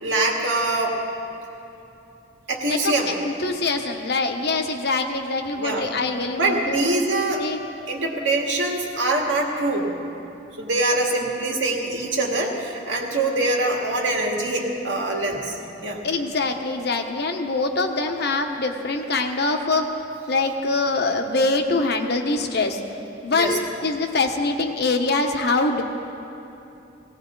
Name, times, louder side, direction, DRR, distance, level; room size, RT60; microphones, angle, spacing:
voice 1, 0.0-1.0 2.5-3.1 5.6-5.9 6.3-7.5 7.9-9.9 10.6-15.6 15.8-16.0 23.3-23.5, right 2 dB, 80° right, -1 dB, 2.1 m, -24 dB
voice 2, 2.7-6.9 7.4-7.6 16.0-19.9 20.3-22.8 23.2-25.8, left 3 dB, 60° left, 5 dB, 1.0 m, -24 dB
18.0 x 17.0 x 3.9 m, 2.8 s
head